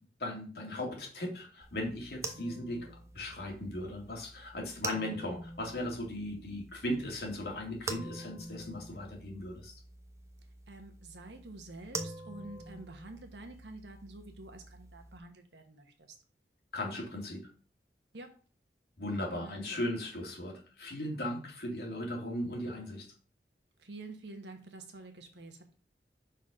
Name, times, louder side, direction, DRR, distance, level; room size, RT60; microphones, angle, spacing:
voice 1, 0.2-9.7 16.7-17.4 19.0-23.1, left 1 dB, 60° left, 0 dB, 2.1 m, -37 dB
sound 1, 1.6-15.2, right 3 dB, 15° right, 0.6 m, -46 dB
voice 2, 10.7-16.1 18.1-18.4 19.3-19.9 23.8-25.7, right 2 dB, 80° right, 5 dB, 1.2 m, -48 dB
5.7 x 4.1 x 5.0 m, 0.39 s
head